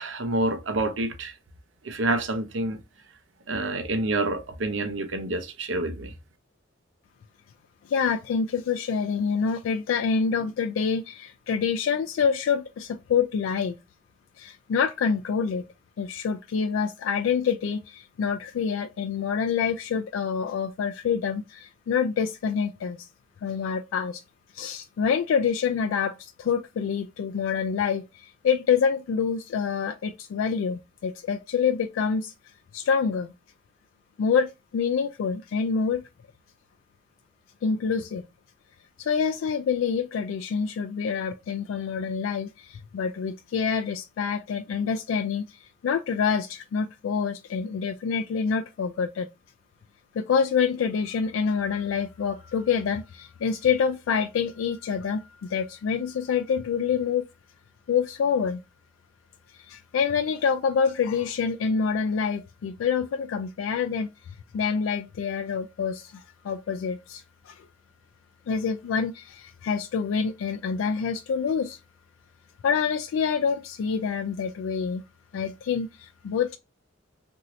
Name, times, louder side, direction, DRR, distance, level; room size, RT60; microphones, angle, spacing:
voice 1, 0.0-1.3 1.8-2.8 3.5-6.1, right 2 dB, 70° right, 0.6 m, -28 dB
voice 2, 7.8-13.7 14.4-15.6 16.0-23.0 23.4-24.2 24.5-32.3 32.7-33.3 34.2-36.0 37.6-38.2 39.0-45.4 45.8-49.3 50.1-57.2 57.9-58.6 59.7-64.1 64.5-67.6 68.5-71.8 72.6-75.0 75.3-76.6, left 6 dB, 85° left, 0.3 m, -26 dB
3.0 x 2.6 x 2.5 m
head